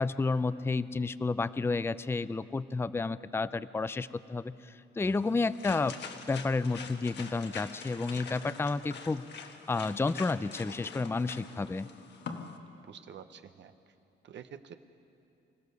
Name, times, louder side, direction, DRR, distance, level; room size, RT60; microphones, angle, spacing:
voice 1, 0.0-6.0 6.3-9.3 9.7-11.9, left 3 dB, 10° left, 15 dB, 0.4 m, -31 dB
sound 1, 5.0-12.6, left 5 dB, 60° left, 1.7 m, -45 dB
voice 2, 12.9-13.7 14.2-14.7, right 8 dB, 65° right, 8 dB, 0.9 m, -48 dB
25.5 x 16.0 x 6.8 m, 2.6 s
cardioid pair, 90°, 20 cm